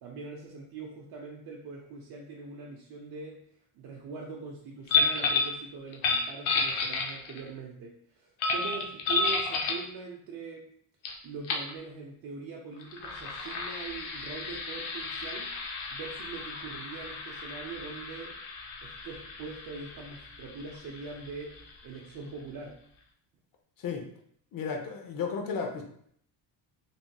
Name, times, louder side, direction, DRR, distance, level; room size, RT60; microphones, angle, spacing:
voice 1, 0.0-3.4 3.7-10.7 11.2-15.5 15.9-18.4 18.8-22.8, right 4 dB, 50° right, -2 dB, 0.6 m, -42 dB
sound 1, 4.9-5.6 5.9-7.5 8.4-9.9 11.0-11.1 11.4-11.7 12.8-22.1, left 4 dB, 85° left, 0.7 m, -32 dB
voice 2, 24.5-25.8, left 5 dB, 45° left, 3 dB, 0.7 m, -33 dB
3.3 x 2.7 x 2.3 m, 0.66 s
cardioid pair, 130°, 47 cm